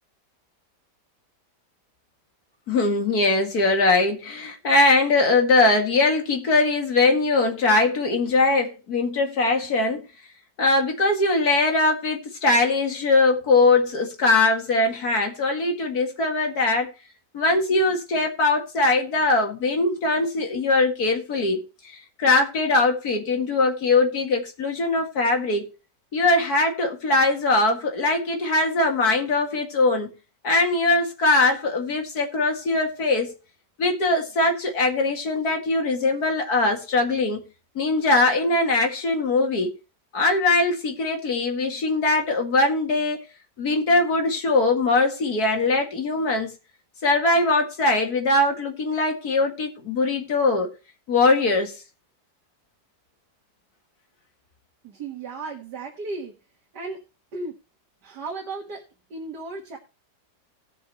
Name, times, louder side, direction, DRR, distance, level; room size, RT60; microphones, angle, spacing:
voice 1, 2.7-10.1 10.6-16.9 17.3-21.7 22.2-25.7 26.1-30.1 30.4-33.3 33.8-37.4 37.8-39.7 40.1-43.3 43.6-46.5 47.0-50.7 51.1-51.8, left 2 dB, 65° left, 2.4 m, -21 dB
voice 2, 54.8-56.3 56.7-57.0 57.3-57.6 58.0-58.8 59.1-59.8, right 3 dB, 75° right, 2.2 m, -34 dB
19.0 x 6.3 x 3.1 m
omnidirectional pair, 1.8 m